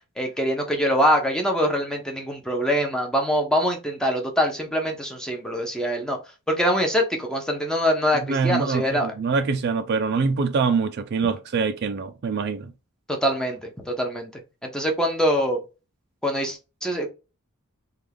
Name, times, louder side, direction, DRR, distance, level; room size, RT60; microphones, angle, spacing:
voice 1, 0.2-6.2 6.5-9.1 13.1-14.3 14.6-15.6 16.2-17.1, equal, 5° left, 0.7 m, -24 dB
voice 2, 8.2-12.7, right 5 dB, 50° right, 0.4 m, -24 dB
3.4 x 2.4 x 3.3 m
head